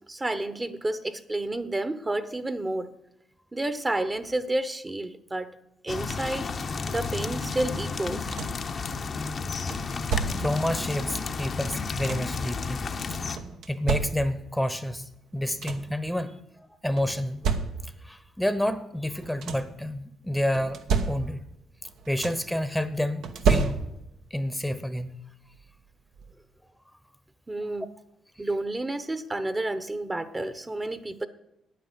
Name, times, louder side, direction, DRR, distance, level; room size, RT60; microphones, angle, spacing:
voice 1, 0.0-2.9 3.5-5.5 5.8-6.5 6.9-8.3 27.5-27.9 28.4-31.3, right 2 dB, 20° right, 12 dB, 1.0 m, -30 dB
sound 1, 5.9-13.4, left 4 dB, 50° left, 0.9 m, -32 dB
sound 2, 7.9-8.7 9.7-10.7 11.6-12.5 13.4-14.6 15.1-15.2 15.4-16.0 17.0-18.1 19.1-19.8 20.5-21.6 21.8-22.6 23.2-24.2 25.5-25.6 26.1-26.3, right 5 dB, 75° right, 1.1 m, -30 dB
voice 2, 10.4-13.2 13.7-17.4 18.0-21.5 22.1-23.9 24.3-25.1 28.4-28.5, left 1 dB, 5° left, 13 dB, 0.9 m, -29 dB
9.5 x 9.1 x 7.4 m, 0.84 s
supercardioid pair, 60°, 0 cm